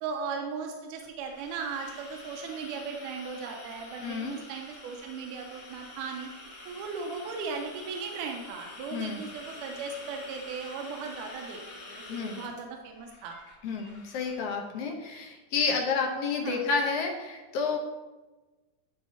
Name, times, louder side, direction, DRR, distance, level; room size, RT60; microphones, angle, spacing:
voice 1, 0.0-6.3 6.7-11.6 11.9-13.4 16.4-16.6, right 5 dB, 80° right, 2 dB, 2.2 m, -37 dB
sound 1, 1.0-14.4, left 2 dB, 50° left, 1.2 m, -47 dB
voice 2, 4.0-4.3 8.9-9.2 12.1-12.4 13.6-17.8, left 4 dB, 70° left, 0 dB, 2.3 m, -30 dB
11.5 x 4.6 x 2.8 m, 1.2 s
omnidirectional pair, 3.7 m